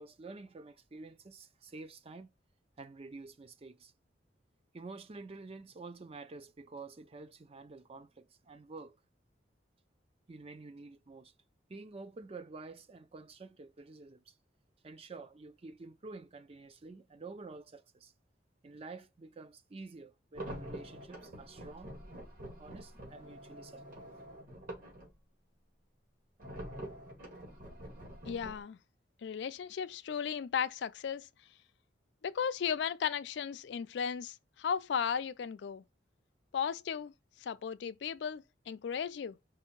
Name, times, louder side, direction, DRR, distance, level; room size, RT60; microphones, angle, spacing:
voice 1, 0.0-2.3 2.8-3.9 4.7-9.0 10.3-11.3 11.7-14.3 14.8-18.1 18.6-21.9 22.6-24.1, right 3 dB, 35° right, 0.4 m, -49 dB
sound 1, 20.3-25.1 26.4-28.6, right 1 dB, 50° right, 1.9 m, -46 dB
voice 2, 28.3-28.8 29.2-31.3 32.2-35.8 36.5-39.4, left 7 dB, 65° left, 0.3 m, -35 dB
4.7 x 2.6 x 4.4 m
head